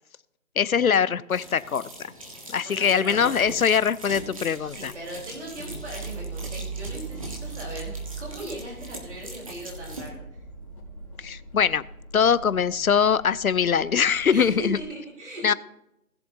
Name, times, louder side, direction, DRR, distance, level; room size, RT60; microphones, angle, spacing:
voice 1, 0.6-2.1 2.5-4.9 11.2-11.8 12.1-14.8 15.4-15.5, left 7 dB, 70° left, 18 dB, 0.7 m, -22 dB
sound 1, 1.3-10.1, right 1 dB, 25° right, 1.6 m, -42 dB
voice 2, 2.4-3.3 4.7-10.2 14.3-15.5, right 1 dB, 50° right, -3 dB, 4.0 m, -38 dB
sound 2, 3.1-14.8, right 3 dB, 20° left, 2.6 m, -40 dB
19.5 x 7.3 x 2.8 m, 0.86 s
hypercardioid pair, 175°, 44 cm